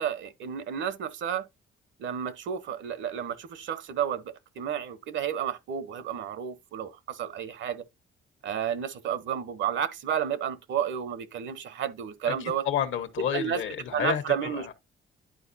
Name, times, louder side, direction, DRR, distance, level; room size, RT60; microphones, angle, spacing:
voice 1, 0.0-1.5 2.0-7.8 8.4-12.7 13.3-13.6 13.9-14.7, right 8 dB, 70° right, 1.0 m, -31 dB
voice 2, 12.2-14.7, left 9 dB, 75° left, 1.2 m, -31 dB
10.5 x 4.5 x 2.7 m
cardioid pair, 90°, 20 cm